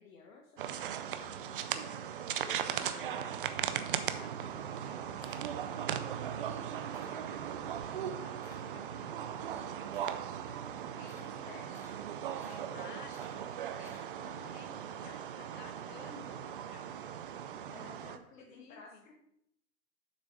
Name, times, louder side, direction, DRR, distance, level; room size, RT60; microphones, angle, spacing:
voice 1, 0.0-2.0 11.1-11.7 14.2-14.4 15.0-15.5 17.7-19.1, left 4 dB, 60° left, 0 dB, 1.4 m, -55 dB
sound 1, 0.6-18.2, right 9 dB, 40° right, 0.4 m, -38 dB
voice 2, 2.4-3.3 3.8-5.9 6.3-10.2 10.5-10.7 10.9-11.5 12.4-15.1 15.5-17.2 17.6-19.0, left 5 dB, 80° left, 6 dB, 1.6 m, -56 dB
sound 2, 2.8-3.2 5.5-5.8 7.5-8.2 10.0-10.8 12.3-12.7 14.0-14.2 14.8-14.9 16.5-16.9, right 12 dB, 75° right, 0.7 m, -55 dB
Camera, 3.9-6.0 6.4-7.3 7.7-14.4, left 2 dB, 30° left, 2.2 m, -60 dB
7.3 x 6.3 x 4.7 m, 0.76 s
hypercardioid pair, 145°, 47 cm